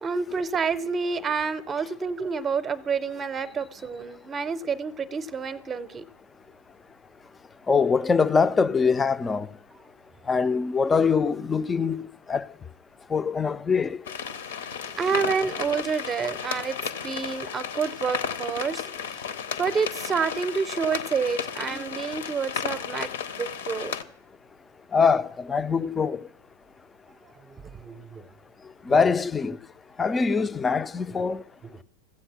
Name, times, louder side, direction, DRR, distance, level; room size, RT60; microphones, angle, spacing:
voice 1, 0.0-6.1 14.5-14.7 15.0-18.9 19.2-19.3 19.6-23.1 23.3-24.0 27.5-28.3 28.9-29.0 31.1-31.2 31.6-31.8, right 5 dB, 20° right, 0.7 m, -29 dB
voice 2, 7.7-9.5 10.3-12.5 13.1-14.0 24.9-26.3 28.8-29.6 30.0-31.4, left 5 dB, 15° left, 0.4 m, -23 dB
sound 1, 14.1-24.0, left 7 dB, 60° left, 0.6 m, -34 dB
15.0 x 7.9 x 5.9 m
figure-of-eight pair, 90°, 0 cm